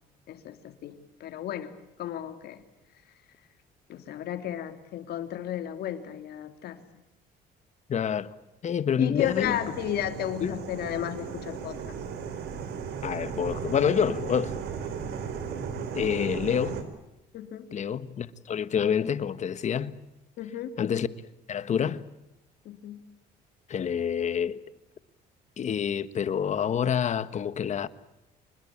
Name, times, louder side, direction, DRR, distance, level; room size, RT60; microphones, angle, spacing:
voice 1, 0.3-1.7 2.0-2.6 3.9-6.8 9.0-12.0 17.3-17.7 20.4-20.7 22.6-23.0, left 11 dB, 70° left, 3.0 m, -33 dB
voice 2, 7.9-8.3 8.6-9.6 10.4-10.6 13.0-14.5 15.7-16.8 17.7-19.9 20.8-21.1 21.5-22.0 23.7-24.6 25.6-27.9, left 8 dB, 45° left, 1.4 m, -27 dB
sound 1, 9.2-16.8, right 6 dB, 75° right, 4.1 m, -36 dB
26.5 x 20.5 x 8.6 m
cardioid pair, 110°, 17 cm